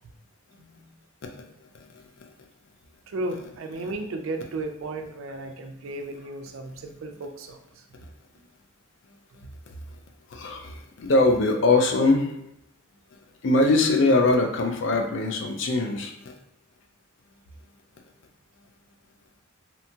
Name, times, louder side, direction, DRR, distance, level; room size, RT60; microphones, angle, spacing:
voice 1, 1.9-2.3 3.8-3.9 10.3-12.3 13.4-16.4, left 2 dB, 55° left, 3 dB, 0.4 m, -22 dB
voice 2, 3.1-7.6, right 2 dB, 65° right, 6 dB, 0.3 m, -34 dB
2.7 x 2.2 x 2.7 m, 0.82 s
head